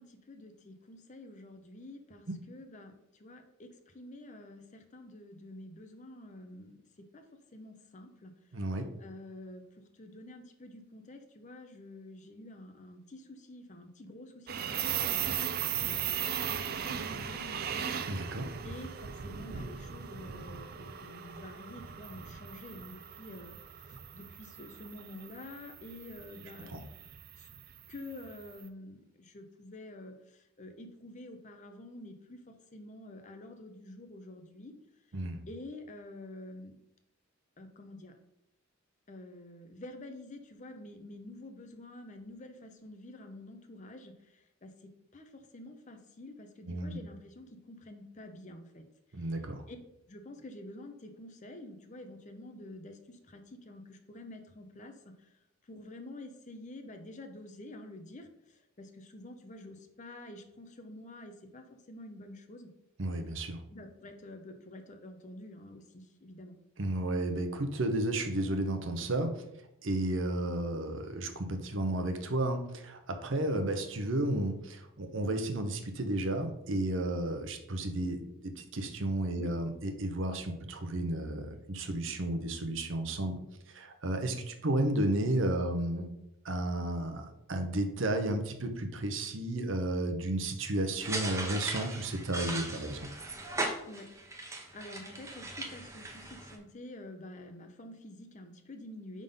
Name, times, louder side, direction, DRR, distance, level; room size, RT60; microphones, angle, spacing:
voice 1, 0.0-7.2 7.5-8.3 9.0-18.0 18.6-26.7 27.4-27.5 27.9-34.7 35.5-36.7 37.6-38.1 39.1-48.8 49.2-49.4 49.7-49.8 50.1-55.3 55.6-62.7 63.7-66.6 79.4-79.5 93.9-99.2, left 1 dB, 35° left, 6 dB, 0.7 m, -48 dB
voice 2, 8.5-8.9 18.1-18.5 26.7-26.8 35.1-35.4 46.7-47.0 49.1-49.6 63.0-63.6 66.8-69.3 69.8-83.4 83.7-86.1 86.4-93.1, right 1 dB, 60° right, 6 dB, 0.8 m, -32 dB
sound 1, 14.5-28.5, right 9 dB, 45° right, 0.4 m, -38 dB
sound 2, 91.0-96.6, right 2 dB, 15° right, 0.8 m, -38 dB
5.2 x 3.7 x 5.4 m, 0.82 s
head